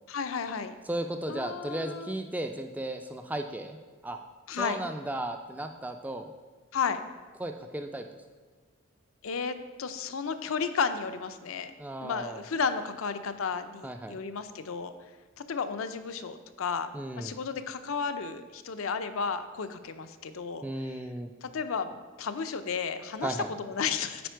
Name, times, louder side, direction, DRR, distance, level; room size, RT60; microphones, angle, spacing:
voice 1, 0.1-0.7 1.3-2.1 4.5-4.8 6.7-7.0 9.2-11.7 12.0-14.9 15.4-16.9 17.1-20.7 21.4-24.3, left 5 dB, 75° left, 9 dB, 0.5 m, -33 dB
voice 2, 0.8-3.8 4.0-4.2 4.5-6.3 7.4-8.1 11.8-12.4 13.8-14.2 16.9-17.3 20.6-21.3 23.2-23.5, right 1 dB, 5° right, 5 dB, 0.3 m, -35 dB
9.3 x 4.3 x 4.5 m, 1.5 s
head